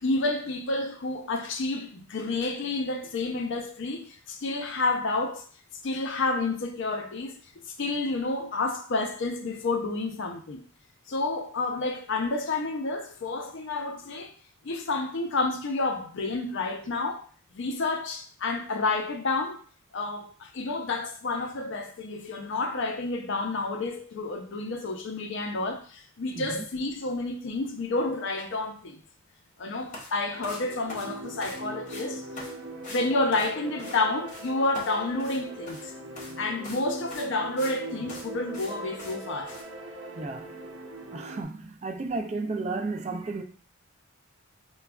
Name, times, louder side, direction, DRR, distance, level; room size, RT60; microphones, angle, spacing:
voice 1, 0.0-5.4 5.8-7.4 7.8-10.6 11.1-14.3 14.6-17.3 17.5-19.6 19.9-29.0 29.6-32.2 32.9-35.9 36.4-39.6, left 3 dB, 60° left, 0.5 m, -30 dB
voice 2, 26.3-26.6 40.2-40.5 41.1-43.4, right 3 dB, 30° right, 0.3 m, -33 dB
sound 1, 29.9-30.1 30.4-31.6 31.9-32.1 32.4-32.5 32.8-33.0 33.3-34.0 34.3-34.5 34.7-35.9 36.2-36.3 36.6-36.8 37.1-37.8 38.1-38.2 38.5-38.7 39.0-39.2 39.5-39.6, left 2 dB, 35° left, 1.0 m, -42 dB
sound 2, 30.3-41.4, right 1 dB, 75° right, 0.6 m, -41 dB
4.8 x 2.2 x 2.3 m
head